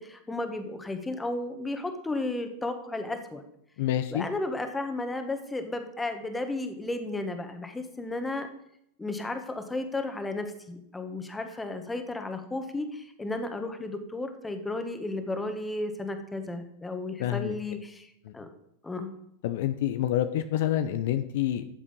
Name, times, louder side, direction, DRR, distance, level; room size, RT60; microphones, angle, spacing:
voice 1, 0.0-3.4 4.1-8.5 9.0-18.5 18.8-19.1, left 2 dB, 10° left, 6 dB, 1.8 m, -33 dB
voice 2, 3.8-4.3 17.2-17.6 18.2-18.3 19.4-21.6, left 12 dB, 65° left, 10 dB, 0.7 m, -27 dB
12.5 x 7.3 x 5.3 m, 0.76 s
hypercardioid pair, 100°, 0 cm